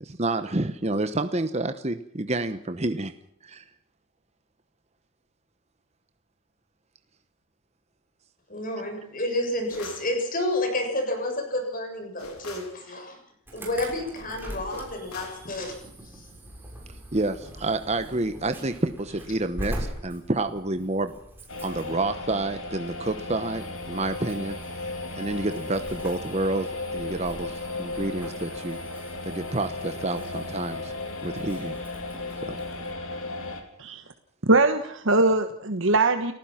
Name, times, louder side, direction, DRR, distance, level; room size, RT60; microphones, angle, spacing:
voice 1, 0.0-3.1 3.4-3.6 17.1-21.1 21.6-24.6 25.2-28.8 29.2-31.0 31.2-31.8 32.4-32.6 33.9-34.0, right 2 dB, 30° right, 9 dB, 1.0 m, -29 dB
voice 2, 8.5-13.2 13.5-15.8 16.1-16.3, left 1 dB, 40° left, 4 dB, 7.2 m, -30 dB
sound 1, 9.7-10.1 12.2-12.8 14.7-15.5, left 2 dB, 85° left, 4.8 m, -41 dB
Insect / Alarm, 13.5-32.9, right 1 dB, 10° right, 6.5 m, -43 dB
sound 2, 21.5-33.6, left 2 dB, 70° left, 3.8 m, -35 dB
voice 3, 34.5-36.3, right 2 dB, 60° right, 7 dB, 1.3 m, -21 dB
30.0 x 15.5 x 5.9 m, 0.73 s
head